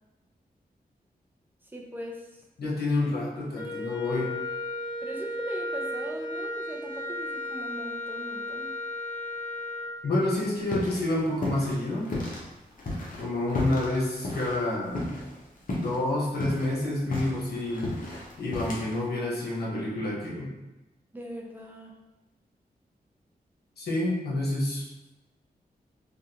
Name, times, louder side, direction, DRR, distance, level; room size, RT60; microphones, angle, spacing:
voice 1, 1.7-2.2 5.0-8.7 21.1-22.0, equal, 10° right, -1 dB, 0.6 m, -40 dB
voice 2, 2.6-4.3 10.0-12.1 13.2-15.2 15.7-17.9 18.4-20.5 23.8-24.8, left 2 dB, 80° left, -4 dB, 1.0 m, -28 dB
Wind instrument woodwind instrument, 3.5-10.0, left 1 dB, 25° left, 0.7 m, -34 dB
sound 1, 10.3-11.1 11.3-12.4 12.8-15.4 15.7-16.0 16.3-19.0, left 1 dB, 55° left, 0.9 m, -33 dB
3.4 x 2.4 x 2.8 m, 1.0 s
wide cardioid pair, 85°, 16 cm